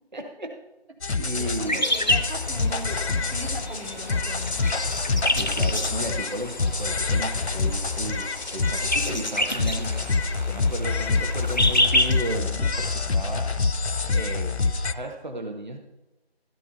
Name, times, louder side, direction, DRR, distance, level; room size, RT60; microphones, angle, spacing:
voice 1, 0.1-0.6 1.2-1.8 5.3-10.1 10.5-13.5 13.9-15.8, right 1 dB, 45° right, 5 dB, 0.8 m, -34 dB
sound 1, 1.0-14.9, left 4 dB, 90° left, 0.9 m, -26 dB
voice 2, 1.1-4.6 5.3-5.6, right 1 dB, 90° right, -2 dB, 3.4 m, -39 dB
sound 2, 1.6-12.4, left 1 dB, 45° left, 0.4 m, -29 dB
13.5 x 12.0 x 2.8 m, 1.0 s
figure-of-eight pair, 175°, 32 cm